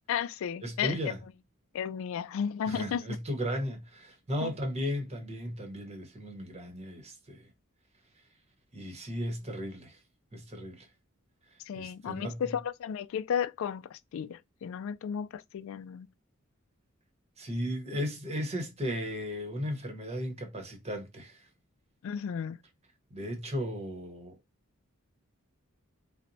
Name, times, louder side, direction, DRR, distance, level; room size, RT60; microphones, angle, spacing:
voice 1, 0.1-1.0 1.7-3.2 4.4-4.5 11.7-16.1 22.0-22.6, left 8 dB, 65° left, 0.3 m, -34 dB
voice 2, 0.6-1.2 2.7-7.5 8.7-10.0 10.3-10.9 11.5-12.5 17.4-21.5 23.1-24.4, equal, 30° right, 0.9 m, -36 dB
4.1 x 2.1 x 2.6 m
head